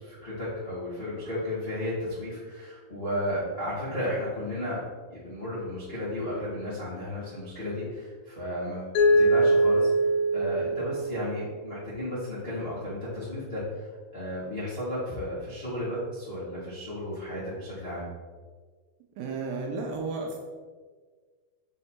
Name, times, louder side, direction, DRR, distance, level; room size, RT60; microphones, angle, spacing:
voice 1, 0.0-4.8 5.1-9.9 10.3-18.1, left 1 dB, 65° left, -10 dB, 0.6 m, -34 dB
Mallet percussion, 9.0-11.9, right 1 dB, 85° left, 3.0 m, -23 dB
voice 2, 19.2-20.4, right 3 dB, 80° right, 1 dB, 2.3 m, -33 dB
6.2 x 4.3 x 4.3 m, 1.5 s
omnidirectional pair, 4.6 m